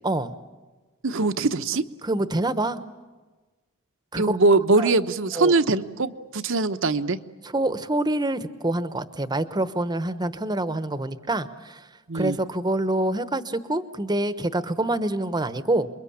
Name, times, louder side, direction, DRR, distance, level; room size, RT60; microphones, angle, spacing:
voice 1, 0.0-0.4 2.0-2.8 4.1-4.4 4.8-5.0 5.3-5.5 7.4-11.8 12.1-15.9, right 1 dB, 20° right, 12 dB, 1.0 m, -26 dB
voice 2, 1.0-1.8 4.2-7.2 12.1-12.4, right 3 dB, 65° right, 10 dB, 1.0 m, -22 dB
28.0 x 23.0 x 8.7 m, 1.3 s
head